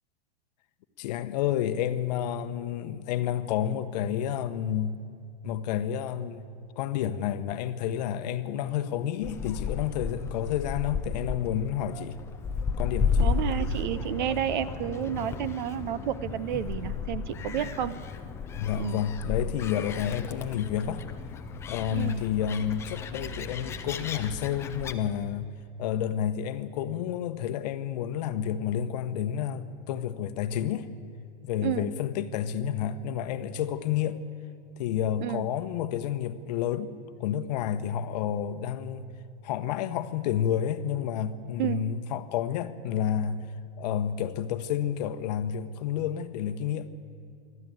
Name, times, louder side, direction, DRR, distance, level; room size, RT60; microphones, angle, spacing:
voice 1, 1.0-5.0 5.4-6.5 6.8-12.2 12.8-13.4 17.6-17.7 18.6-21.0 21.7-25.5 25.8-30.9 31.4-34.2 34.8-39.1 39.4-43.5 43.8-46.9, left 9 dB, 45° left, 1.0 m, -30 dB
Gull seagull, 9.2-24.9, left 5 dB, 10° left, 0.5 m, -33 dB
voice 2, 13.2-17.9 18.8-19.0 21.9-22.2 31.6-31.9 35.2-35.5 41.6-41.8, right 11 dB, 55° right, 0.9 m, -31 dB
27.0 x 12.0 x 9.2 m
supercardioid pair, 165°, 29 cm